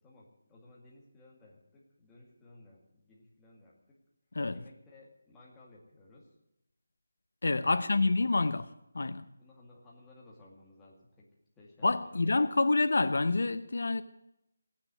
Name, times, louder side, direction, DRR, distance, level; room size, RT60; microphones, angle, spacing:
voice 1, 0.0-4.0 4.5-6.3 7.7-7.9 9.4-11.3 11.6-12.4, left 2 dB, 5° left, 2.1 m, -57 dB
voice 2, 7.4-8.7 8.9-9.3 11.8-14.0, left 3 dB, 60° left, 0.8 m, -27 dB
17.0 x 9.5 x 8.3 m
figure-of-eight pair, 175°, 0 cm